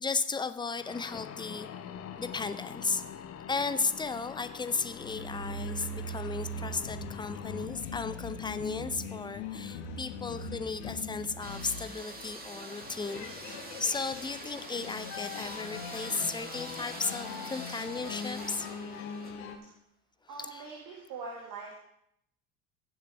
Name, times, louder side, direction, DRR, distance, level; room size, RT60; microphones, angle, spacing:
voice 1, 0.0-1.7 2.2-3.0 3.5-18.7 20.4-20.6, left 4 dB, 10° left, 11 dB, 0.6 m, -35 dB
sound 1, 0.8-7.7, left 9 dB, 35° left, 0.9 m, -45 dB
sound 2, 4.9-19.6, left 3 dB, 60° left, 1.6 m, -41 dB
sound 3, 11.4-19.3, right 2 dB, 20° right, 1.9 m, -45 dB
voice 2, 20.3-21.8, right 4 dB, 50° right, -1 dB, 2.2 m, -43 dB
16.5 x 7.5 x 3.4 m, 0.75 s
figure-of-eight pair, 65°, 42 cm